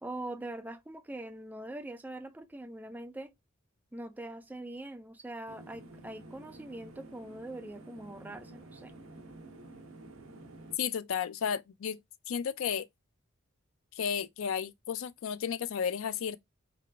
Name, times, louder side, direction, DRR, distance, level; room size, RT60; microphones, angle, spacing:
voice 1, 0.0-3.3 3.9-9.0, right 1 dB, 10° right, 0.3 m, -43 dB
sound 1, 5.5-10.8, right 2 dB, 75° right, 0.8 m, -50 dB
voice 2, 10.8-12.0 12.3-12.9 14.0-16.4, left 7 dB, 65° left, 0.4 m, -33 dB
3.8 x 2.4 x 3.3 m
head